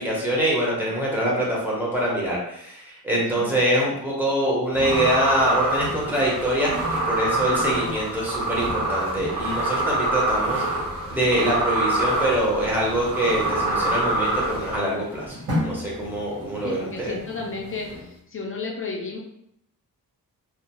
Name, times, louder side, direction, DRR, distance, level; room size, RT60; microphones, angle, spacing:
voice 1, 0.0-10.6 11.1-15.4 15.6-17.1, right 1 dB, 5° right, -5 dB, 0.6 m, -24 dB
sound 1, 4.7-18.2, left 1 dB, 40° right, 0.9 m, -36 dB
sound 2, 4.7-14.8, right 2 dB, 70° right, 1.1 m, -26 dB
voice 2, 16.6-19.2, left 4 dB, 40° left, -1 dB, 0.4 m, -32 dB
2.4 x 2.2 x 2.8 m, 0.75 s
wide cardioid pair, 175°, 36 cm